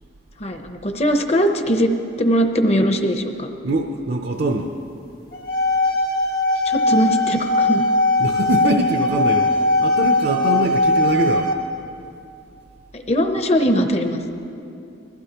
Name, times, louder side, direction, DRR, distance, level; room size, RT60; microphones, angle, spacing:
voice 1, 0.4-1.9 2.2-3.5 6.6-7.8 12.9-14.2, equal, 35° left, 6 dB, 0.8 m, -20 dB
voice 2, 3.6-4.7 8.2-11.5, right 2 dB, 55° right, 2 dB, 0.6 m, -23 dB
sound 1, 5.3-11.5, left 2 dB, 50° left, 1.1 m, -19 dB
21.0 x 15.0 x 3.0 m, 2.6 s
head